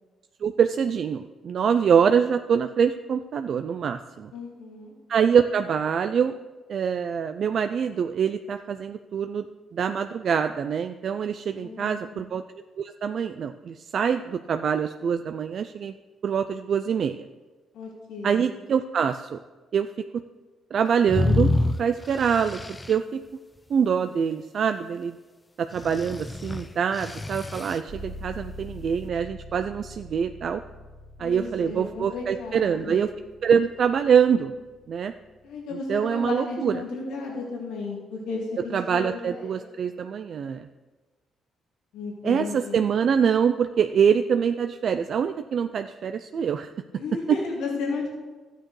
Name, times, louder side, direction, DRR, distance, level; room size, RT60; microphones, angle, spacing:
voice 1, 0.4-4.3 5.1-6.3 6.7-9.5 9.7-12.4 12.8-15.9 16.2-17.3 18.2-19.4 19.7-19.9 20.7-21.5 21.8-22.6 22.9-23.2 23.7-25.1 25.6-30.6 31.2-33.1 33.4-34.5 34.9-35.1 35.9-36.8 38.7-40.7 42.2-46.7, right 7 dB, 55° right, 8 dB, 0.3 m, -24 dB
voice 2, 4.3-4.9 11.5-12.2 17.7-18.5 31.2-33.0 35.4-39.7 41.9-43.0 46.9-48.1, left 3 dB, 90° left, -3 dB, 2.2 m, -34 dB
sound 1, 21.1-23.0 25.8-27.8, left 2 dB, 20° left, 0.6 m, -27 dB
sound 2, 27.9-35.6, left 1 dB, 75° right, 2.0 m, -44 dB
13.0 x 8.9 x 3.2 m, 1.3 s
cardioid pair, 90°, 0 cm